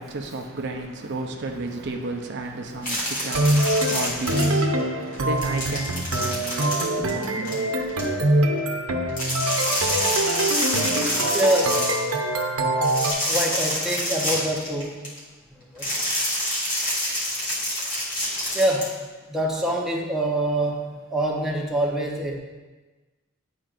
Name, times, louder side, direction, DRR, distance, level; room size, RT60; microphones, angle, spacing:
voice 1, 0.0-8.7, right 2 dB, 55° right, 0.6 m, -33 dB
sound 1, 2.8-4.8 5.1-8.0 9.1-12.0 12.8-15.2 15.8-18.9, left 1 dB, 40° left, 2.0 m, -27 dB
sound 2, 3.3-13.1, right 1 dB, 80° right, 0.8 m, -24 dB
voice 2, 11.3-11.8 13.3-15.0 15.6-15.8 18.5-19.0 19.3-22.4, right 1 dB, ahead, 0.8 m, -25 dB
10.5 x 4.4 x 2.5 m
head